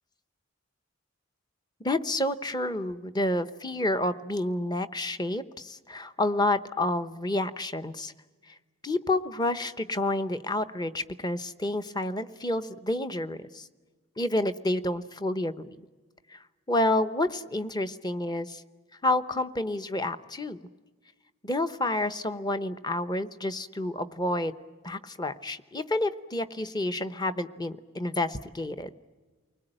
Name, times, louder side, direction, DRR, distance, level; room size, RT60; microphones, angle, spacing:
voice 1, 1.8-8.1 8.8-13.7 14.2-15.8 16.3-16.4 16.7-18.6 19.0-20.6 21.4-24.5 24.8-28.9, left 1 dB, 20° left, 11 dB, 0.8 m, -29 dB
29.0 x 20.5 x 9.0 m, 1.4 s
head